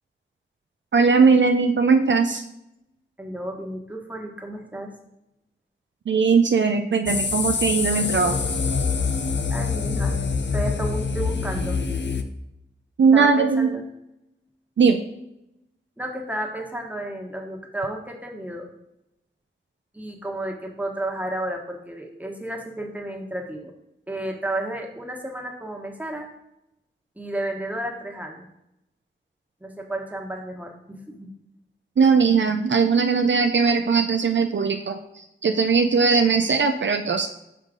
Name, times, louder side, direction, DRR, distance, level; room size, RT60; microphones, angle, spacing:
voice 1, 0.9-2.4 6.1-8.4 13.0-13.7 14.8-15.0 32.0-37.3, right 5 dB, 65° right, 6 dB, 0.4 m, -19 dB
voice 2, 3.2-4.9 9.5-10.2 10.5-11.8 13.1-13.8 16.0-18.7 19.9-23.7 24.1-26.3 27.2-28.5 29.6-31.3, right 1 dB, 5° right, 1 dB, 1.2 m, -32 dB
sound 1, 7.1-12.2, left 5 dB, 60° left, 0.5 m, -25 dB
5.5 x 5.0 x 3.7 m, 0.85 s
cardioid pair, 40°, 21 cm